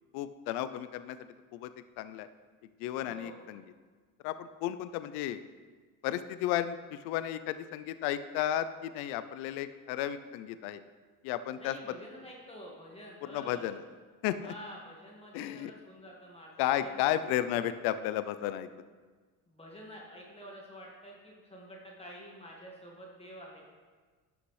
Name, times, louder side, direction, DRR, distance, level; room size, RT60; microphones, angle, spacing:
voice 1, 0.1-1.2 1.5-1.7 2.0-2.3 2.8-3.6 4.2-5.4 6.0-10.8 11.2-11.7 13.3-13.8 14.2-14.5 15.3-15.7 16.6-18.7, left 12 dB, 85° left, 12 dB, 0.5 m, -33 dB
voice 2, 3.1-3.4 11.6-13.7 14.3-17.1 17.5-17.8 19.5-23.6, equal, 15° left, -3 dB, 1.7 m, -49 dB
11.5 x 5.8 x 3.2 m, 1.4 s
supercardioid pair, 85°, 36 cm